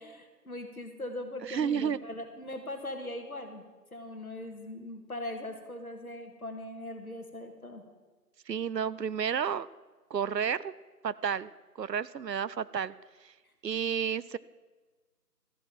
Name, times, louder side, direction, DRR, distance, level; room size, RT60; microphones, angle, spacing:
voice 1, 0.0-3.6 3.9-7.8, left 1 dB, 60° left, 5 dB, 1.9 m, -40 dB
voice 2, 1.4-2.0 8.5-9.7 10.1-10.7 11.0-11.5 11.8-12.9 13.2-13.3 13.6-14.4, right 7 dB, 85° right, 18 dB, 0.6 m, -31 dB
13.0 x 7.1 x 7.6 m, 1.3 s
figure-of-eight pair, 175°, 48 cm